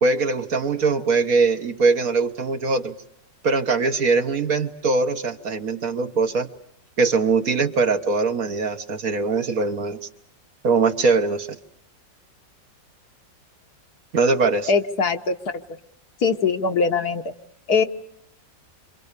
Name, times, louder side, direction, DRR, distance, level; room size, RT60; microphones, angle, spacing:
voice 1, 0.0-2.9 3.4-6.5 7.0-10.0 10.6-11.6 14.1-14.7, right 4 dB, 55° right, 6 dB, 1.6 m, -21 dB
voice 2, 14.7-15.6 16.2-17.3 17.7-17.8, left 5 dB, 60° left, 6 dB, 1.7 m, -21 dB
27.5 x 27.0 x 6.7 m, 0.72 s
omnidirectional pair, 2.0 m